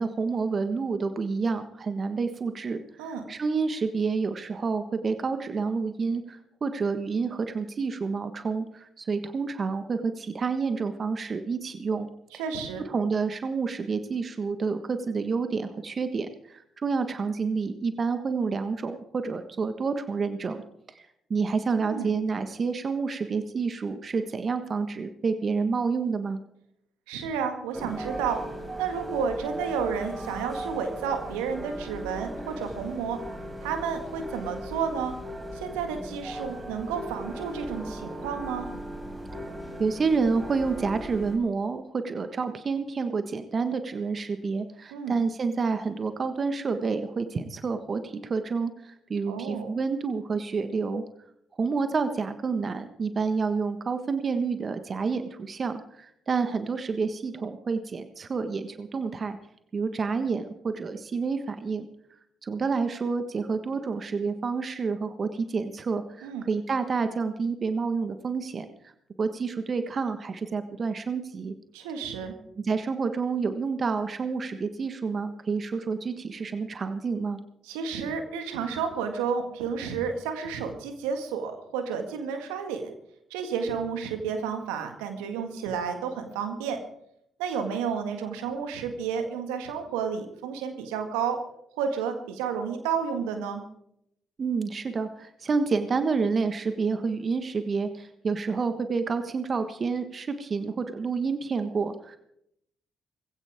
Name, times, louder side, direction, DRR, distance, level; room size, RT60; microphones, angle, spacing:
voice 1, 0.0-12.1 12.9-20.6 20.9-26.4 39.8-51.0 51.6-59.4 59.7-61.9 62.4-68.9 69.2-71.5 72.6-77.4 94.4-102.2, right 4 dB, 45° right, 9 dB, 1.5 m, -29 dB
voice 2, 12.4-12.8 21.8-22.1 27.1-28.4 28.8-33.2 33.6-35.1 35.5-38.7 44.9-45.2 49.3-49.7 66.2-66.5 71.7-72.4 77.6-82.9 83.3-86.8 87.4-91.4 91.7-93.6, right 6 dB, 80° right, 6 dB, 1.9 m, -31 dB
sound 1, 27.7-41.4, right 1 dB, 25° right, 5.5 m, -38 dB
20.5 x 16.0 x 3.7 m, 0.73 s
hypercardioid pair, 45°, 0 cm